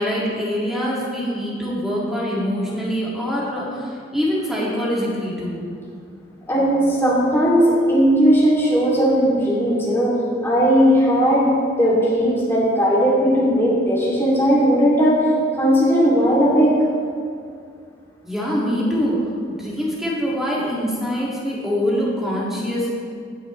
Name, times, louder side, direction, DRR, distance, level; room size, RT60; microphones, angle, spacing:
voice 1, 0.0-5.6 18.2-22.9, equal, ahead, -6 dB, 1.9 m, -24 dB
voice 2, 6.5-10.1 10.4-11.5 11.8-15.2 15.6-16.7, equal, 15° left, -7 dB, 2.4 m, -17 dB
16.5 x 5.9 x 3.1 m, 2.3 s
head